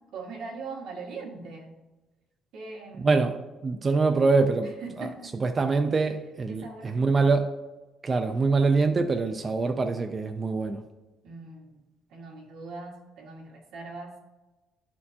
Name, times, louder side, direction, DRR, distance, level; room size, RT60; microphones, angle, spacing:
voice 1, 0.1-1.8 2.5-3.2 4.6-5.3 6.5-7.3 11.2-11.8 12.1-14.1, right 3 dB, 75° right, -2 dB, 1.7 m, -41 dB
voice 2, 3.0-3.4 3.6-4.7 5.4-7.5 8.0-10.8, right 4 dB, 20° right, 6 dB, 0.3 m, -24 dB
11.0 x 4.3 x 2.8 m, 1.1 s
cardioid pair, 175°, 0 cm